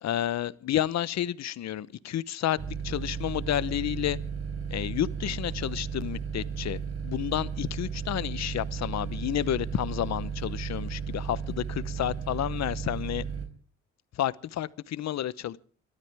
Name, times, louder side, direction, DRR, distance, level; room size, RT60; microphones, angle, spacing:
voice 1, 0.0-2.6 2.8-4.2 4.7-6.8 7.0-13.2 14.1-15.6, left 12 dB, 60° left, 0.9 m, -30 dB
sound 1, 2.6-13.5, right 6 dB, 55° right, 4.4 m, -34 dB
29.5 x 13.0 x 3.5 m
cardioid pair, 90°, 30 cm